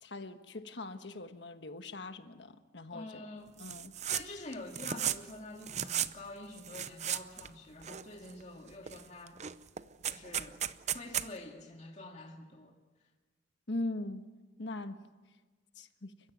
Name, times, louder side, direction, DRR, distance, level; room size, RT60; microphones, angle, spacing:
voice 1, 0.0-3.3 3.6-3.9 13.7-14.2 14.6-15.0 15.8-16.1, left 2 dB, 65° left, 9 dB, 1.4 m, -40 dB
voice 2, 2.9-3.5 4.1-9.4 10.1-10.6 10.9-12.8, left 2 dB, 40° left, 1 dB, 2.1 m, -47 dB
sound 1, 3.6-4.2 4.5-5.3 5.6-6.1 6.6-7.5 7.8-8.4 8.9-9.0 9.3-11.3, right 10 dB, 40° right, 0.7 m, -35 dB
29.5 x 15.5 x 9.3 m, 1.3 s
head